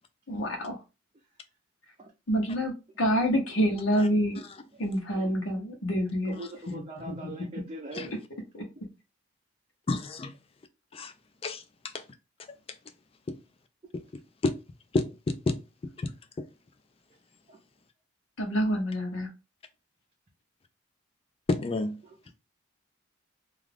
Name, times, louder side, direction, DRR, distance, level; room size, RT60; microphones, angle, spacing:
voice 1, 0.3-0.8 2.3-4.4 4.8-6.4 6.7-7.1 8.5-8.6 18.4-19.3, equal, 75° left, 0.8 m, -27 dB
voice 2, 6.2-8.1 17.5-17.6 22.0-22.3, right 1 dB, 30° right, 0.5 m, -42 dB
voice 3, 9.9-10.3 10.9-11.1 11.4-11.6 11.9-12.0 13.3-13.4 13.9-14.0 14.4-14.6 14.9-15.6 16.0-16.5 21.5-22.0, left 3 dB, 30° left, 0.3 m, -29 dB
2.4 x 2.3 x 3.2 m
head